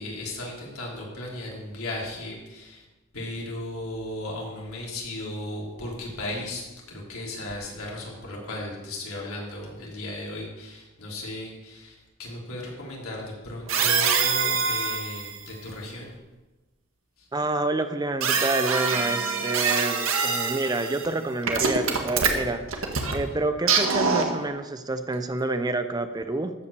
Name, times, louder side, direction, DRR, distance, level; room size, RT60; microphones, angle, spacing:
voice 1, 0.0-2.8 3.1-16.1 17.2-17.3, left 1 dB, 90° left, -3 dB, 3.4 m, -36 dB
sound 1, 13.7-15.4 18.2-21.1 21.4-23.2 23.6-24.5, right 5 dB, 70° right, 1.4 m, -24 dB
voice 2, 17.3-26.5, right 2 dB, 20° right, 9 dB, 0.6 m, -28 dB
13.5 x 5.6 x 6.8 m, 1.1 s
head